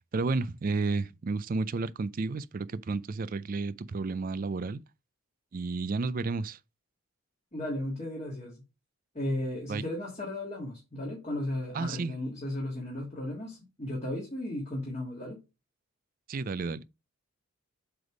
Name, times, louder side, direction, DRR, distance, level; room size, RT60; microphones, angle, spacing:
voice 1, 0.1-4.8 5.5-6.6 9.7-9.8 11.7-12.1 16.3-16.8, right 3 dB, 40° right, 0.4 m, -31 dB
voice 2, 7.5-8.6 9.1-15.4, left 1 dB, 30° left, 1.9 m, -35 dB
7.9 x 3.5 x 4.8 m
head